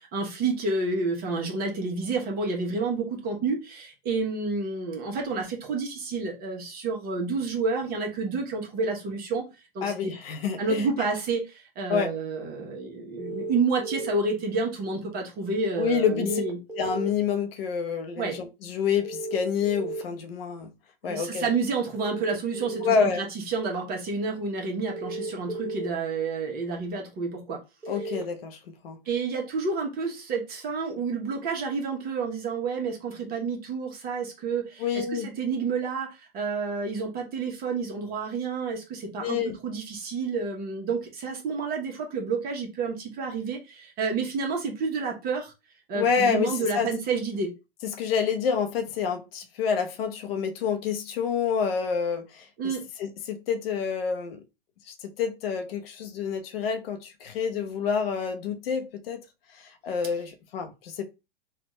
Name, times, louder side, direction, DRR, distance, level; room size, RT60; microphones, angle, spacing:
voice 1, 0.0-9.4 9.7-10.1 10.6-16.6 18.2-18.4 21.0-27.6 29.1-45.5 45.9-47.5 52.6-52.8, right 4 dB, 30° right, 1.1 m, -29 dB
voice 2, 9.8-10.9 11.9-12.1 15.8-16.4 16.8-20.7 21.0-21.5 22.8-23.2 27.9-28.6 28.8-29.0 34.8-35.3 39.2-39.5 45.9-46.9 47.8-52.5 53.0-54.4 54.9-59.2 59.5-61.0, left 6 dB, 65° left, 0.8 m, -28 dB
sound 1, 13.2-14.2 16.1-17.1 19.0-20.0 22.0-22.9 24.9-25.9 27.8-28.2, right 3 dB, 5° right, 0.4 m, -34 dB
3.3 x 2.4 x 3.1 m
hypercardioid pair, 115°, 31 cm